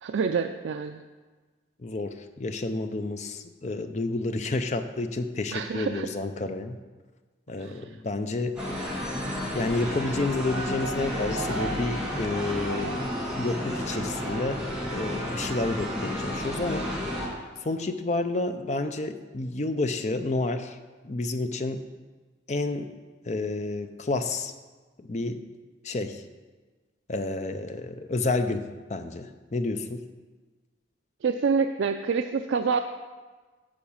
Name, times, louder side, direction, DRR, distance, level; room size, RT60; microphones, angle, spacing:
voice 1, 0.0-1.0 5.5-6.1 7.6-7.8 31.2-32.8, right 5 dB, 80° right, 7 dB, 0.4 m, -27 dB
voice 2, 1.8-6.8 7.5-8.6 9.5-14.7 14.9-16.9 17.6-20.8 21.0-21.8 22.5-22.9 23.3-24.5 25.0-25.4 25.8-26.2 27.1-30.0, left 2 dB, 40° left, 8 dB, 0.5 m, -30 dB
sound 1, 8.6-17.3, equal, 5° right, 2.0 m, -31 dB
8.7 x 4.9 x 7.1 m, 1.3 s
head